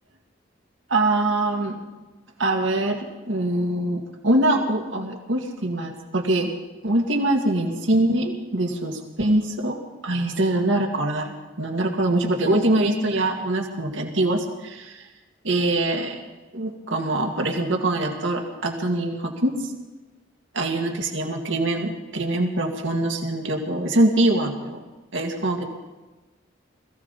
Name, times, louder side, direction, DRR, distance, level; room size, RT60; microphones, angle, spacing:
voice 1, 0.9-1.8 2.4-6.5 6.8-11.3 11.6-15.0 15.4-16.2 16.5-19.5 20.5-24.8 25.1-25.6, right 1 dB, 90° right, 2 dB, 2.1 m, -23 dB
21.5 x 15.0 x 4.1 m, 1.2 s
head